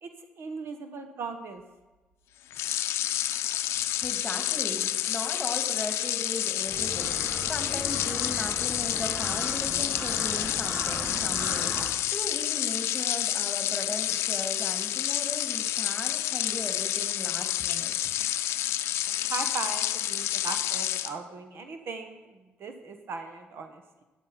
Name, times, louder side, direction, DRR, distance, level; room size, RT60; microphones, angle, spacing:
voice 1, 0.0-1.6 19.3-24.0, right 4 dB, 60° right, 7 dB, 1.3 m, -38 dB
sound 1, 2.5-21.1, left 13 dB, 85° left, 0.5 m, -29 dB
voice 2, 3.9-17.9, left 2 dB, 15° left, 5 dB, 2.3 m, -38 dB
sound 2, 5.6-11.2 11.6-11.7, right 1 dB, 85° right, 3.6 m, -52 dB
sound 3, 6.7-11.8, equal, 35° right, 4.5 m, -37 dB
12.5 x 10.5 x 5.8 m, 1.2 s
cardioid pair, 85°, 4 cm